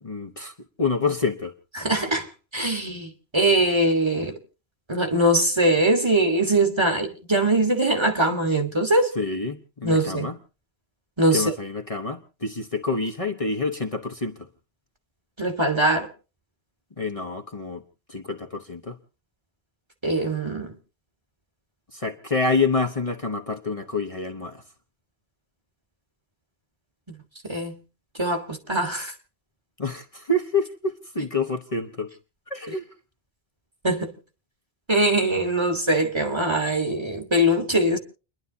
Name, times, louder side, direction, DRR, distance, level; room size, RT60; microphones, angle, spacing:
voice 1, 0.0-1.5 9.1-10.4 11.3-14.5 17.0-17.8 18.1-19.0 21.9-24.6 29.8-32.1 32.5-32.8, left 3 dB, 35° left, 1.1 m, -27 dB
voice 2, 1.7-4.4 4.9-9.1 9.8-10.3 11.2-11.5 15.4-16.1 20.0-20.7 27.1-27.2 27.4-27.8 28.2-29.1 33.8-34.1 34.9-38.0, right 1 dB, 25° right, 1.6 m, -22 dB
30.0 x 11.0 x 2.8 m
omnidirectional pair, 1.0 m